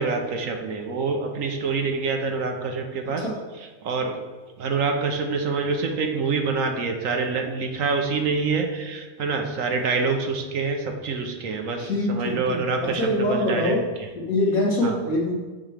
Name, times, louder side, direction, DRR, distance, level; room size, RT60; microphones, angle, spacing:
voice 1, 0.0-3.2 3.8-4.2 4.6-13.8 14.8-15.1, right 4 dB, 65° right, 4 dB, 1.2 m, -26 dB
voice 2, 11.8-13.8 14.2-15.3, left 1 dB, 70° left, -5 dB, 2.3 m, -24 dB
8.8 x 3.2 x 6.4 m, 1.3 s
omnidirectional pair, 1.5 m